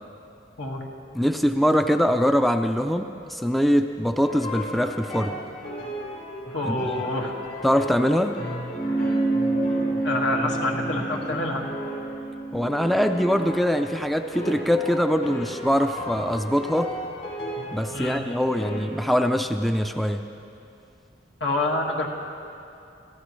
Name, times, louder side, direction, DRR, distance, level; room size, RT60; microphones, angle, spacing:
voice 1, 1.1-5.4 6.6-6.9 7.6-8.4 12.5-16.9 17.7-20.2, equal, ahead, 6 dB, 0.4 m, -23 dB
sound 1, 4.2-12.1 12.6-18.8, equal, 50° left, 4.7 m, -35 dB
voice 2, 6.5-7.4 8.9-9.2 10.0-11.6 17.9-18.2 21.4-22.1, left 2 dB, 80° left, 0 dB, 1.9 m, -27 dB
sound 2, 8.7-13.5, right 2 dB, 30° left, 1.1 m, -28 dB
26.0 x 15.0 x 3.2 m, 2.7 s
head